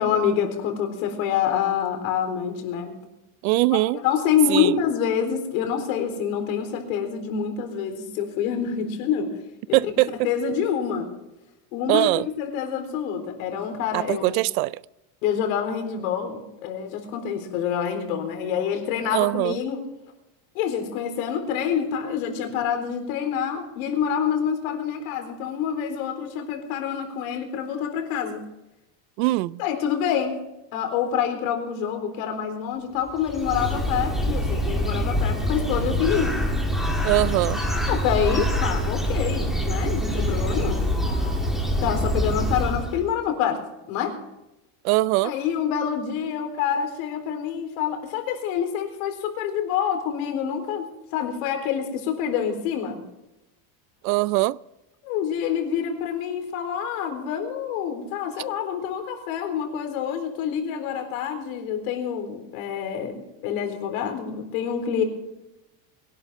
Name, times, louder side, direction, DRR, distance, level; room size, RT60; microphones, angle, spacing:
voice 1, 0.0-3.0 3.7-9.3 9.7-9.8 10.2-11.1 11.7-14.4 15.2-19.8 20.5-28.5 29.6-30.3 30.7-36.4 37.9-40.9 41.8-43.6 43.9-44.1 45.2-53.0 55.0-65.0, left 8 dB, 75° left, 4.1 m, -27 dB
voice 2, 3.4-4.0 4.5-4.7 9.7-10.3 11.9-12.2 13.9-14.8 19.1-19.6 29.2-29.6 37.0-37.6 44.8-45.4 54.0-54.6, right 20 dB, 90° right, 0.6 m, -22 dB
Bird, 33.1-43.1, equal, ahead, 1.9 m, -25 dB
22.0 x 12.0 x 3.7 m
cardioid pair, 175°, 42 cm